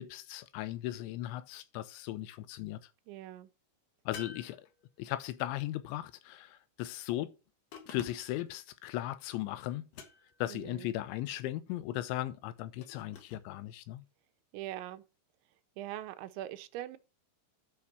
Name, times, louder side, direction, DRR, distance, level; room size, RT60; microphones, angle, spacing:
voice 1, 0.0-2.9 4.1-4.7 5.0-7.3 7.9-9.9 10.4-14.0, left 15 dB, 90° left, 3.1 m, -37 dB
voice 2, 3.1-3.5 10.5-10.9 14.5-15.0 15.8-17.0, right 13 dB, 90° right, 3.1 m, -42 dB
sound 1, 4.1-5.2 7.7-8.5 9.9-10.5 12.8-13.5, left 6 dB, 65° left, 2.3 m, -50 dB
9.7 x 6.0 x 5.9 m
omnidirectional pair, 5.2 m